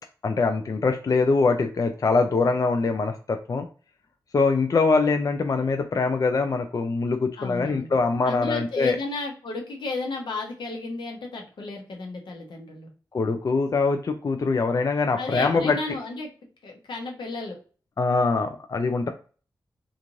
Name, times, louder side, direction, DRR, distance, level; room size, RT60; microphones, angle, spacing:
voice 1, 0.2-3.7 4.3-9.0 13.1-15.8 18.0-19.1, left 4 dB, 45° left, 5 dB, 0.4 m, -23 dB
voice 2, 7.4-7.9 8.2-12.9 15.1-16.3 16.6-17.6 19.0-19.1, left 3 dB, 80° left, 2 dB, 0.9 m, -33 dB
3.0 x 2.5 x 2.5 m, 0.38 s
cardioid pair, 60°, 8 cm